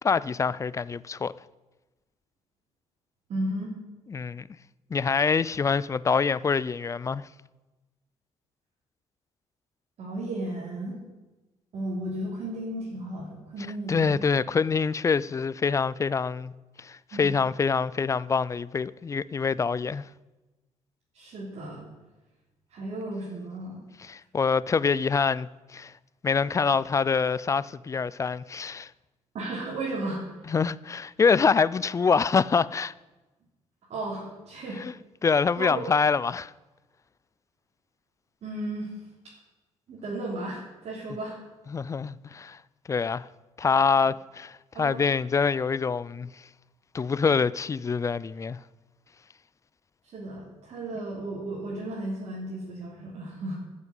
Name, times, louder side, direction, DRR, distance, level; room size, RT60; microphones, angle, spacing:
voice 1, 0.0-1.3 4.1-4.5 4.9-7.3 13.9-16.5 16.8-20.0 24.1-25.9 26.2-28.9 30.5-32.9 34.8-34.9 35.2-36.5 41.7-42.6 42.9-43.3 43.6-46.3 46.9-48.6, left 5 dB, 25° left, 0.4 m, -25 dB
voice 2, 3.3-3.7 10.0-11.0 11.7-14.2 17.1-17.3 21.1-21.9 22.7-23.8 29.3-30.2 33.9-34.8 35.6-35.9 38.4-39.0 39.9-41.4 44.7-45.0 50.1-53.6, right 1 dB, 60° right, 3.3 m, -34 dB
11.5 x 7.3 x 8.2 m
cardioid pair, 110°, 12 cm